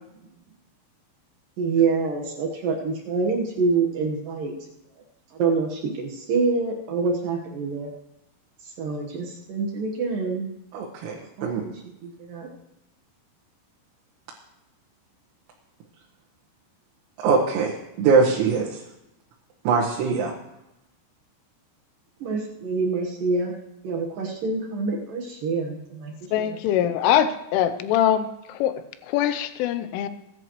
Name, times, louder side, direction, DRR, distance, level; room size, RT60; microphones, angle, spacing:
voice 1, 1.6-4.5 5.3-7.9 8.6-10.5 11.4-12.5 22.2-23.5 23.8-26.4, right 4 dB, 70° right, -1 dB, 2.1 m, -26 dB
voice 2, 10.7-11.6 17.2-17.7 18.0-18.8 19.7-20.3, right 5 dB, 90° right, -3 dB, 4.0 m, -22 dB
voice 3, 26.3-30.1, left 10 dB, 80° left, 12 dB, 3.1 m, -23 dB
21.5 x 11.0 x 3.1 m, 0.87 s
omnidirectional pair, 5.9 m